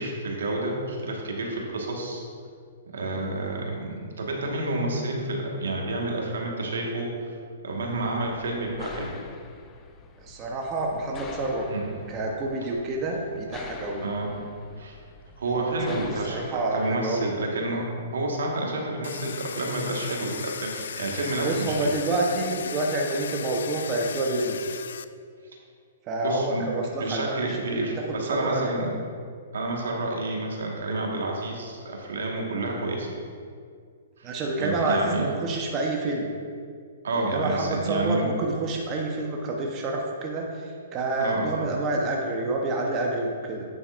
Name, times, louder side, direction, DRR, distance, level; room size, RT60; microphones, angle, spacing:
voice 1, 0.0-2.2 2.9-7.4 7.6-9.1 11.7-11.9 14.0-14.3 14.8-14.9 15.4-17.8 18.1-21.9 26.2-26.6 27.0-28.9 29.5-33.1 34.2-35.3 37.0-38.3 41.2-41.7, right 2 dB, 85° right, -1 dB, 1.6 m, -29 dB
sound 1, 7.9-16.6, left 4 dB, 20° left, 0.5 m, -45 dB
voice 2, 10.2-11.7 12.1-14.0 15.5-17.3 21.4-24.8 26.1-28.7 34.2-36.3 37.1-43.7, right 2 dB, 30° right, 0 dB, 0.9 m, -28 dB
Domestic sounds home sounds, 19.0-25.0, left 7 dB, 75° left, 0.3 m, -37 dB
9.0 x 7.8 x 2.5 m, 2.1 s
hypercardioid pair, 140°, 0 cm